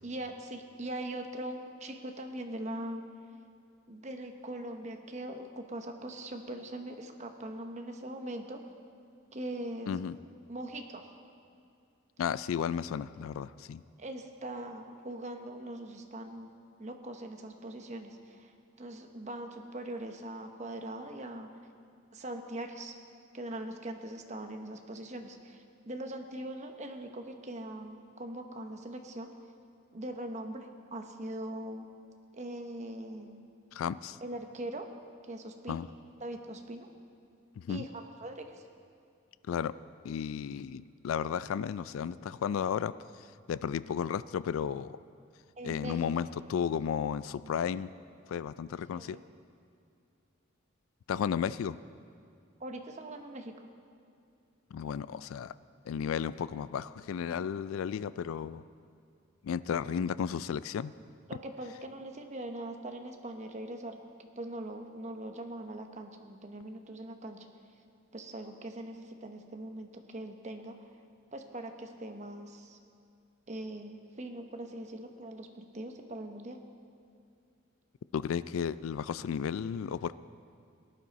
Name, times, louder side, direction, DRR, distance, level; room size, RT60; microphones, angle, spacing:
voice 1, 0.0-3.0 3.9-8.6 9.3-9.9 10.5-11.0 14.0-16.5 16.8-18.5 18.8-21.5 22.1-22.9 23.3-29.3 29.9-31.9 32.3-33.5 34.2-34.9 35.2-35.8 36.2-36.9 37.7-38.7 45.6-46.0 48.9-49.2 52.6-53.5 61.3-64.0 64.3-67.5 68.1-70.7 71.3-72.8 73.5-76.6, right 1 dB, 35° right, 5 dB, 0.9 m, -41 dB
voice 2, 12.2-13.8 33.7-34.2 35.7-35.9 37.6-37.8 39.5-39.7 40.0-45.0 45.6-47.9 48.3-49.2 51.1-51.8 54.7-55.5 55.9-58.6 59.4-60.9 78.1-80.1, left 7 dB, 85° left, 16 dB, 0.3 m, -33 dB
18.0 x 11.0 x 4.1 m, 2.4 s
head